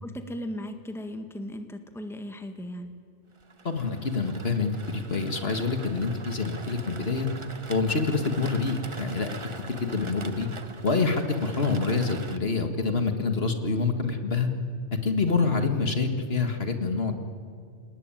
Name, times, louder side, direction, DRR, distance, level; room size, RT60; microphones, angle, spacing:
voice 1, 0.0-2.9, equal, ahead, 6 dB, 1.6 m, -37 dB
sound 1, 3.4-12.4, right 3 dB, 25° right, 0.9 m, -43 dB
voice 2, 3.6-7.3 7.7-9.3 9.7-10.5 10.8-14.5 15.0-17.1, left 4 dB, 55° left, 6 dB, 2.0 m, -26 dB
28.0 x 19.5 x 9.1 m, 2.3 s
omnidirectional pair, 1.2 m